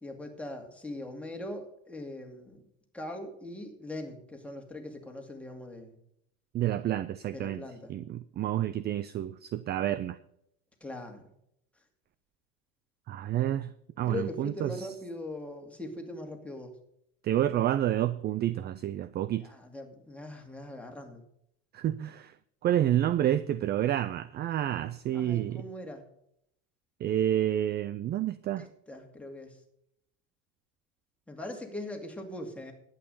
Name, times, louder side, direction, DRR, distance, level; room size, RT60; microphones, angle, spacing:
voice 1, 0.0-2.6 2.9-5.9 7.3-7.9 10.8-11.2 14.1-16.7 19.4-21.2 25.1-26.0 28.6-29.6 31.3-32.7, left 1 dB, 5° left, 2.3 m, -41 dB
voice 2, 6.5-7.6 7.9-10.2 13.1-14.9 17.2-19.5 21.7-22.3 22.6-25.6 27.0-28.7, right 12 dB, 25° right, 0.4 m, -29 dB
11.0 x 8.8 x 5.4 m
supercardioid pair, 115°, 38 cm